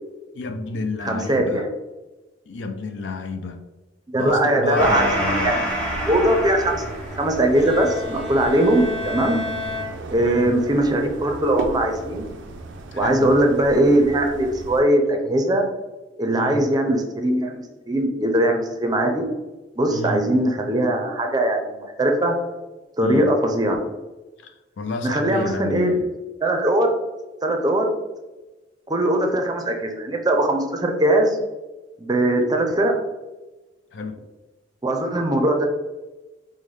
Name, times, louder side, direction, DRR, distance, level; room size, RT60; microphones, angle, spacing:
voice 1, 0.3-1.7 2.5-3.6 4.2-5.6 10.2-10.5 12.9-13.3 16.3-16.6 19.9-20.2 23.0-23.3 24.4-26.1 33.9-34.2, left 3 dB, 75° left, 7 dB, 0.4 m, -29 dB
voice 2, 1.0-1.7 4.1-5.6 6.1-6.8 7.1-9.4 10.1-12.3 12.9-15.7 16.2-19.3 19.8-22.3 23.0-23.8 25.0-26.1 26.4-27.0 27.4-27.9 28.9-31.4 32.0-32.9 34.8-35.7, right 1 dB, 20° right, 3 dB, 0.5 m, -20 dB
Gong, 4.7-11.7, equal, 5° left, 0.8 m, -30 dB
sound 1, 5.6-14.8, right 3 dB, 90° right, 0.4 m, -36 dB
Bowed string instrument, 7.6-10.7, left 2 dB, 35° left, 0.7 m, -32 dB
5.3 x 2.1 x 3.2 m, 1.1 s
head